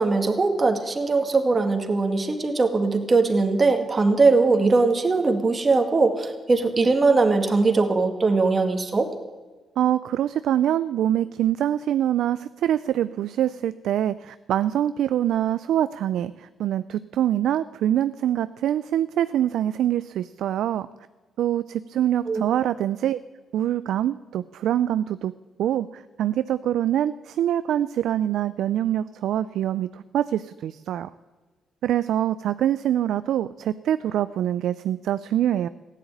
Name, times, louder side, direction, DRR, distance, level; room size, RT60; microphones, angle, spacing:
voice 1, 0.0-9.1 22.3-22.4, right 3 dB, 30° right, 5 dB, 1.9 m, -20 dB
voice 2, 9.8-20.9 21.4-23.2 23.5-25.3 25.6-31.1 31.8-35.7, right 11 dB, 80° right, 14 dB, 0.4 m, -24 dB
15.0 x 10.0 x 8.7 m, 1.3 s
cardioid pair, 90°, 0 cm